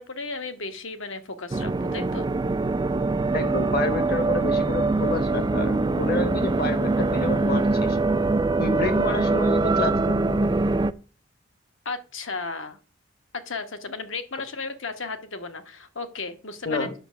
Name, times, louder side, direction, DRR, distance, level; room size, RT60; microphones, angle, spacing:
voice 1, 0.0-2.3 11.8-12.8 13.3-16.9, left 4 dB, 70° left, 1.3 m, -34 dB
sound 1, 1.5-10.9, right 3 dB, 20° right, 0.4 m, -23 dB
voice 2, 3.3-8.0 8.6-10.5 16.6-16.9, left 2 dB, 50° left, 1.2 m, -29 dB
8.9 x 6.7 x 6.2 m
head